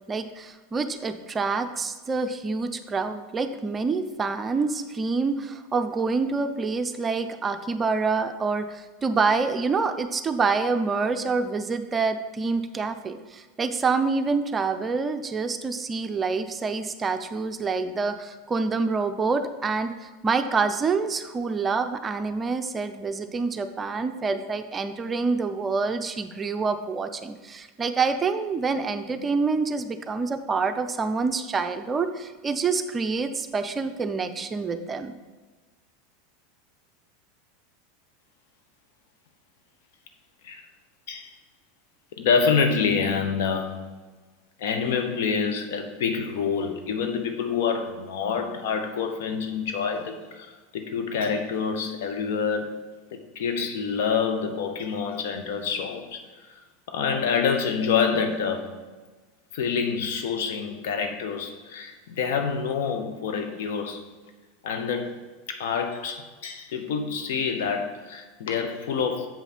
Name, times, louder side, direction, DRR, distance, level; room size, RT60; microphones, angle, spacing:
voice 1, 0.1-35.2, right 4 dB, 25° right, 8 dB, 0.5 m, -27 dB
voice 2, 42.2-43.9 44.6-52.8 53.1-56.2 56.5-56.6 56.9-58.8 59.5-64.1 64.6-65.2 65.5-69.3, left 6 dB, 65° left, 5 dB, 1.0 m, -27 dB
7.4 x 5.6 x 4.3 m, 1.3 s
figure-of-eight pair, 85°, 0 cm